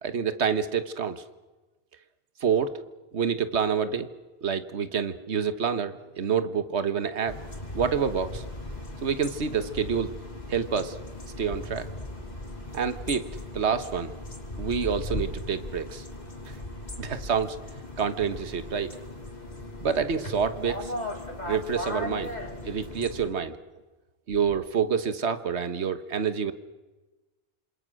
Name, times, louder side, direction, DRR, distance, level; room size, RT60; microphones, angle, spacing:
voice 1, 0.0-1.2 2.4-2.8 3.1-4.1 4.4-7.4 7.7-8.4 9.0-10.1 10.5-11.0 11.4-11.9 12.7-13.3 13.5-14.1 14.6-16.0 17.0-17.6 18.0-18.9 19.8-20.9 21.5-22.3 22.6-23.5 24.3-26.5, right 6 dB, 80° right, 11 dB, 1.6 m, -27 dB
sound 1, 7.3-23.3, left 1 dB, 40° left, 3.4 m, -38 dB
27.5 x 27.0 x 6.4 m, 1.2 s
omnidirectional pair, 1.1 m